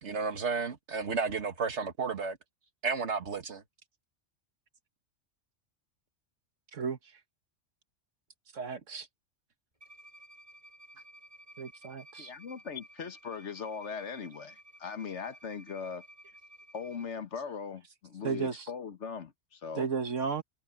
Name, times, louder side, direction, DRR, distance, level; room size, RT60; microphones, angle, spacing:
voice 1, 0.0-2.4 2.8-3.6, right 5 dB, 70° right, 1.8 m, -32 dB
voice 2, 8.5-9.1 11.6-12.3 18.2-18.7 19.8-20.4, right 6 dB, 90° right, 1.9 m, -34 dB
Bowed string instrument, 9.8-17.1, right 1 dB, 30° right, 8.0 m, -54 dB
voice 3, 12.2-16.0 16.7-19.9, left 6 dB, 70° left, 1.5 m, -40 dB
omnidirectional pair, 1.2 m